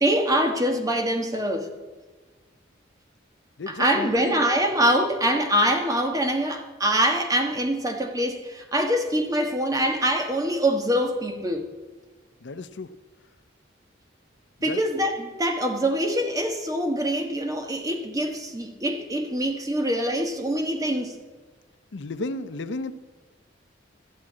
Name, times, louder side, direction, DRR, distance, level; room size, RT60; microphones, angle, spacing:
voice 1, 0.0-1.7 3.7-11.6 14.6-21.2, right 1 dB, 20° right, 1.3 m, -24 dB
voice 2, 3.6-4.4 12.4-12.9 14.6-14.8 21.9-22.9, left 2 dB, 70° left, 0.6 m, -33 dB
13.5 x 7.4 x 8.7 m
head